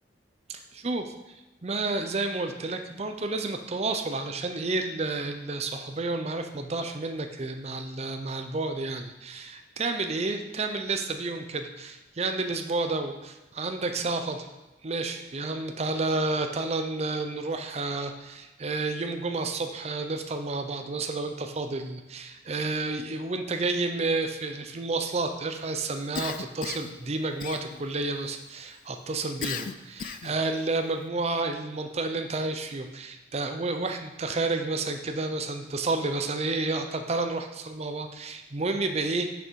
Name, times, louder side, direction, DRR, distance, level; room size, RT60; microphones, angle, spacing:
voice 1, 0.5-1.1 1.6-14.5 14.8-39.3, right 3 dB, 35° right, 6 dB, 0.6 m, -30 dB
Cough, 26.1-27.0 27.4-28.0 29.4-30.4, left 7 dB, 50° left, 0.3 m, -35 dB
6.3 x 5.6 x 4.5 m, 1.1 s
head